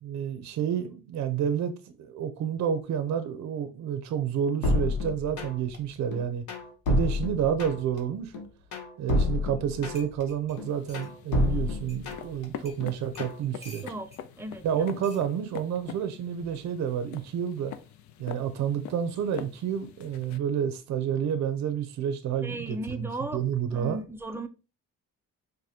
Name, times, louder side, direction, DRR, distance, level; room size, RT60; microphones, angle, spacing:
voice 1, 0.0-1.7 2.0-6.5 6.9-8.3 9.0-13.8 14.6-17.7 18.2-24.0, right 8 dB, 65° right, 0.5 m, -29 dB
sound 1, 4.6-5.8 6.1-8.0 8.3-10.2 10.6-12.4 12.8-13.4, left 2 dB, 85° left, 1.0 m, -29 dB
sound 2, 9.6-9.7 9.9-11.1 11.9-12.0 12.6-12.8 13.1-14.2 15.0-15.3 16.4-16.6, left 1 dB, 20° left, 1.3 m, -50 dB
sound 3, 10.5-20.4, left 9 dB, 70° left, 0.4 m, -45 dB
voice 2, 14.4-14.9 22.4-23.4 23.7-24.5, right 1 dB, 10° right, 0.4 m, -36 dB
4.8 x 2.1 x 2.8 m
cardioid pair, 90°, 30 cm